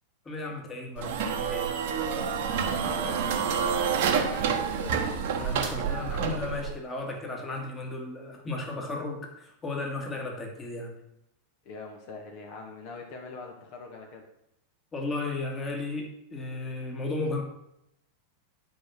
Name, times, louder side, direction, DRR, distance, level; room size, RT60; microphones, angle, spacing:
voice 1, 0.3-1.8 5.4-11.0 14.9-17.4, left 2 dB, 20° left, 2 dB, 2.0 m, -34 dB
sound 1, 1.0-6.8, right 6 dB, 50° right, 1.3 m, -28 dB
voice 2, 2.6-5.0 11.7-14.3, left 4 dB, 45° left, 2 dB, 1.8 m, -43 dB
10.0 x 5.1 x 6.0 m, 0.79 s
figure-of-eight pair, 90°, 0 cm